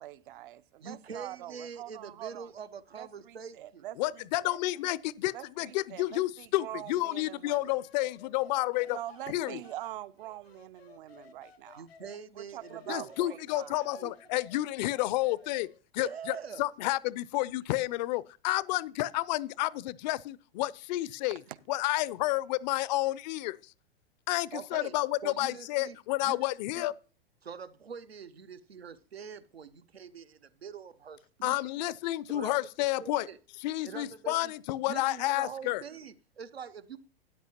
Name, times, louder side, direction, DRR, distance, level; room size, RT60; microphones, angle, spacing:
voice 1, 0.0-2.5 2.9-4.6 5.3-7.8 8.9-11.9 12.3-13.8 21.5-21.6, right 14 dB, 60° right, 0.6 m, -44 dB
voice 2, 0.8-3.8 11.8-13.2 13.5-13.7 13.9-14.1 16.0-16.7 24.5-25.0 25.2-26.4 26.8-26.9 27.4-31.6 32.3-32.5 33.0-33.4 33.8-34.5 34.8-37.0, right 6 dB, 90° right, 0.8 m, -44 dB
voice 3, 4.0-9.0 9.3-9.6 12.9-15.7 15.9-21.4 21.7-23.7 24.3-26.9 31.4-33.3 33.6-35.8, left 17 dB, 45° left, 0.5 m, -30 dB
sound 1, 7.7-12.2 12.6-15.8, left 6 dB, 85° left, 0.9 m, -55 dB
13.0 x 9.6 x 2.9 m
hypercardioid pair, 100°, 30 cm